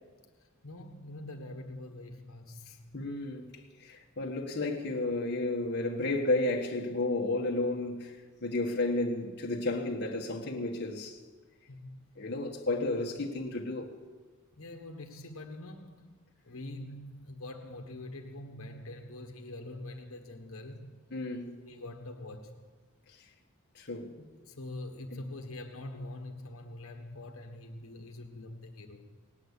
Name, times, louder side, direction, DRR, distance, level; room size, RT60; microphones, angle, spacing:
voice 1, 0.4-3.0 11.7-12.0 14.5-21.0 21.6-22.7 24.4-29.1, left 1 dB, 70° left, 1.5 m, -44 dB
voice 2, 2.9-3.5 3.8-11.2 12.2-13.9 21.1-21.6 23.7-24.3 25.1-25.2, left 2 dB, 50° left, 1.5 m, -32 dB
18.5 x 9.2 x 8.2 m
head